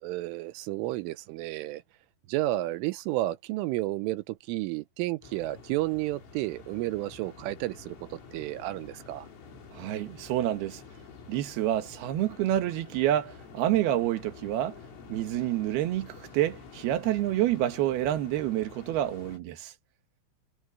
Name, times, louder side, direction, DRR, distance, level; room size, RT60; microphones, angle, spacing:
voice 1, 0.0-1.8 2.3-9.3, right 17 dB, 80° right, 3.3 m, -32 dB
sound 1, 5.2-19.4, left 5 dB, 80° left, 8.1 m, -49 dB
voice 2, 9.7-10.8 11.3-14.8 15.1-19.7, right 13 dB, 65° right, 2.9 m, -28 dB
omnidirectional pair, 5.8 m